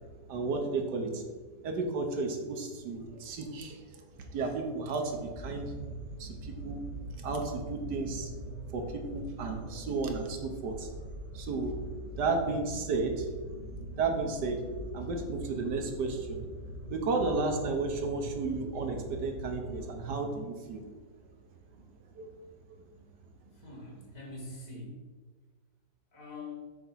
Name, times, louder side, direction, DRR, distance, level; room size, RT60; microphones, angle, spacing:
voice 1, 0.3-1.3 1.6-3.8 4.3-5.7 6.2-6.8 7.2-8.3 8.7-10.9 11.3-11.7 12.2-13.3 14.0-14.6 14.9-16.4 16.9-20.9 22.2-22.3, right 3 dB, 75° right, 3 dB, 1.5 m, -33 dB
sound 1, 5.0-20.4, right 1 dB, 40° right, 0.4 m, -43 dB
voice 2, 23.6-25.0 26.1-26.8, left 3 dB, 50° left, -1 dB, 1.8 m, -44 dB
6.9 x 3.5 x 5.6 m, 1.4 s
omnidirectional pair, 1.9 m